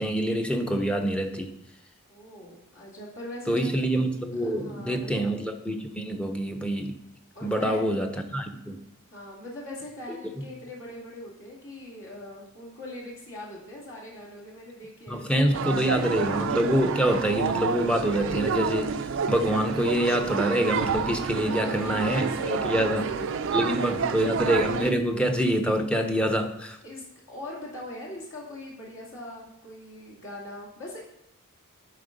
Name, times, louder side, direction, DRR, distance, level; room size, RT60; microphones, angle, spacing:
voice 1, 0.0-1.5 3.5-7.0 7.4-8.8 15.1-19.0 19.3-23.1 23.5-26.8, right 1 dB, 5° left, 4 dB, 0.7 m, -26 dB
voice 2, 2.1-3.7 4.4-5.1 7.3-7.9 9.1-16.1 21.5-24.2 26.8-31.0, left 1 dB, 60° left, -4 dB, 2.6 m, -42 dB
sound 1, 15.5-24.9, right 6 dB, 60° right, 0.4 m, -29 dB
11.0 x 4.1 x 5.2 m, 0.83 s
head